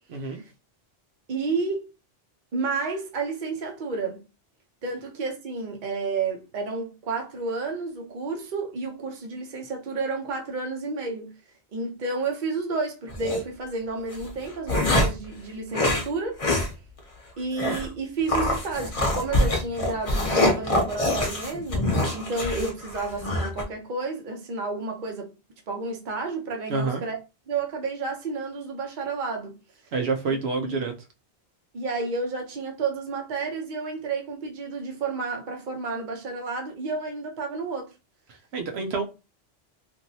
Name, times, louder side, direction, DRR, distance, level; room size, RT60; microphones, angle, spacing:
voice 1, 0.1-0.4 26.7-27.0 29.9-30.9 38.3-39.0, right 4 dB, 80° right, 0.9 m, -28 dB
voice 2, 1.3-1.9 2.5-4.2 4.8-11.3 11.7-16.4 17.4-25.3 25.7-27.2 27.5-29.5 30.3-30.9 31.7-37.9, right 4 dB, 50° right, 0.8 m, -31 dB
sound 1, 13.1-13.4 14.1-15.3 15.7-16.1 16.4-16.7 17.0-17.1 17.6-17.9 18.3-23.6, left 1 dB, 40° left, 0.7 m, -25 dB
3.0 x 2.6 x 2.7 m
omnidirectional pair, 1.0 m